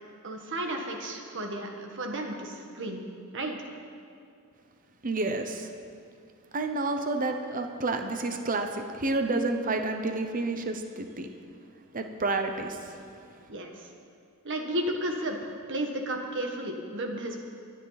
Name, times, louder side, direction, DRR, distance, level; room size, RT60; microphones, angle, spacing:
voice 1, 0.2-3.0 3.3-3.6 13.5-13.9 14.4-17.4, right 1 dB, 55° right, 2 dB, 1.7 m, -33 dB
voice 2, 5.0-5.7 6.5-11.3 11.9-13.0, right 2 dB, 40° right, 6 dB, 0.9 m, -30 dB
23.5 x 10.0 x 4.1 m, 2.4 s
head